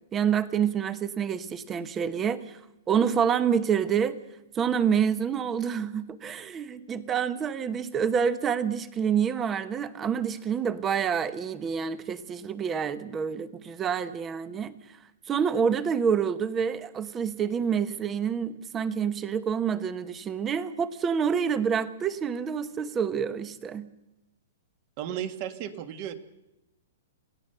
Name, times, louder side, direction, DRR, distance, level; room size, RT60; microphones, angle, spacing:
voice 1, 0.1-2.6 2.9-4.2 4.5-14.7 15.3-23.9, right 7 dB, 15° right, 13 dB, 1.0 m, -27 dB
voice 2, 25.0-26.1, right 10 dB, 35° right, 9 dB, 1.6 m, -34 dB
27.5 x 16.5 x 6.8 m, 0.94 s
hypercardioid pair, 160°, 0 cm